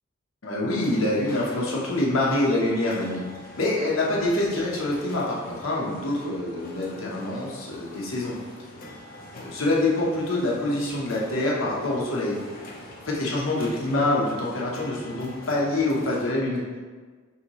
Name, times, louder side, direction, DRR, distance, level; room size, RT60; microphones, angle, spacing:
voice 1, 0.4-3.2 3.6-8.3 9.4-12.4 13.0-16.6, left 2 dB, 80° left, -4 dB, 1.0 m, -25 dB
sound 1, 0.7-16.3, left 1 dB, 45° left, 0.7 m, -44 dB
5.6 x 2.9 x 3.0 m, 1.5 s
head